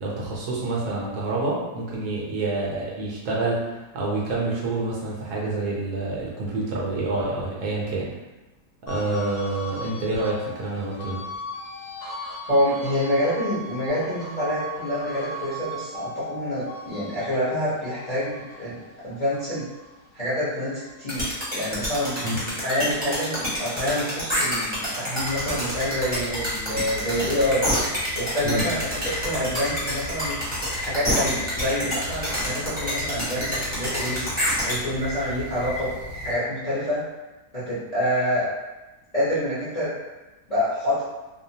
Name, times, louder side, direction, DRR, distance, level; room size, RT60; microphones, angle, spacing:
voice 1, 0.0-8.1 8.8-11.2 22.2-22.4 28.4-28.7, right 2 dB, 70° right, -4 dB, 1.1 m, -27 dB
sound 1, 8.9-21.5 21.9-23.6, left 1 dB, 75° left, 0.5 m, -39 dB
voice 2, 12.5-18.8 19.0-19.7 20.1-21.3 21.5-22.2 22.6-35.9 36.2-37.0 37.5-38.5 39.1-39.9 40.5-41.0, equal, 35° left, -12 dB, 0.6 m, -27 dB
sound 2, 21.1-34.7, equal, 5° right, 0.7 m, -27 dB
sound 3, 25.2-36.4, left 1 dB, 90° right, 1.2 m, -35 dB
2.8 x 2.1 x 2.7 m, 1.1 s
omnidirectional pair, 1.9 m